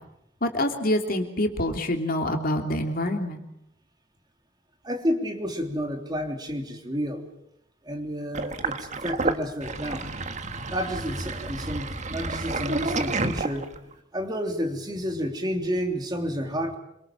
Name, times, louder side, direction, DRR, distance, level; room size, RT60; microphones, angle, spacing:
voice 1, 0.4-3.4, left 1 dB, 50° left, 5 dB, 3.0 m, -26 dB
voice 2, 4.8-7.2 7.8-10.0 10.7-13.7 14.1-16.8, equal, 20° right, 4 dB, 3.3 m, -30 dB
Sink (filling or washing), 8.3-13.9, right 3 dB, 40° right, 1.5 m, -30 dB
26.5 x 25.0 x 7.5 m, 0.79 s
head